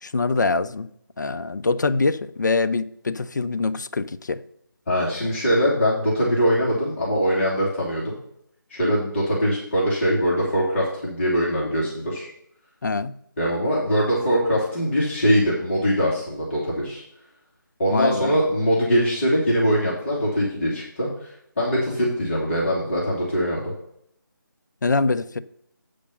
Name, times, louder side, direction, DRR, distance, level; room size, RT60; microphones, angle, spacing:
voice 1, 0.0-0.9 1.2-4.4 12.8-13.2 17.9-18.4 24.8-25.4, left 3 dB, 60° left, 0.5 m, -24 dB
voice 2, 4.9-8.1 8.7-12.3 13.4-17.0 17.8-23.7, equal, 35° left, 2.4 m, -22 dB
8.5 x 5.2 x 5.6 m
figure-of-eight pair, 160°, 11 cm